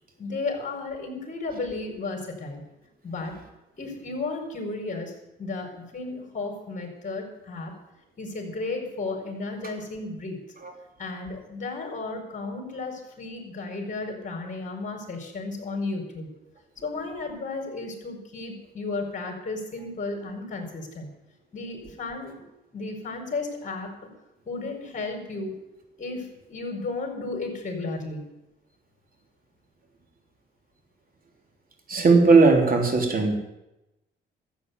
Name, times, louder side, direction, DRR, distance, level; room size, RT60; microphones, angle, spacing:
voice 1, 0.2-2.6 3.0-3.3 3.8-5.1 5.4-7.8 8.2-10.4 11.0-16.3 16.8-21.1 21.5-22.3 22.7-24.1 24.4-25.6 26.0-28.2, left 3 dB, 40° left, 3 dB, 4.6 m, -33 dB
voice 2, 31.9-33.4, right 4 dB, 45° right, 3 dB, 3.4 m, -18 dB
13.0 x 8.1 x 9.4 m, 0.94 s
cardioid pair, 90°, 20 cm